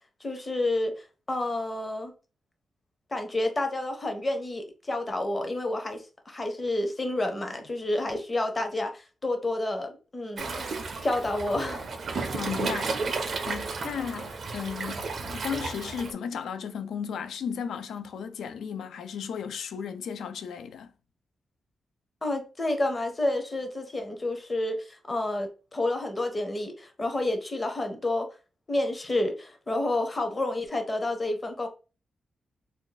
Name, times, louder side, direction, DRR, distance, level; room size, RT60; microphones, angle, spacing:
voice 1, 0.2-2.1 3.1-10.6 11.0-11.8 12.1-12.3 22.2-28.3 28.7-31.7, left 2 dB, 20° left, 0.6 m, -29 dB
Waves surf, 10.4-16.1, right 4 dB, 45° right, 0.4 m, -33 dB
voice 2, 12.3-13.0 13.4-20.9, left 7 dB, 85° left, 0.3 m, -35 dB
2.5 x 2.3 x 3.8 m
wide cardioid pair, 150°, 0 cm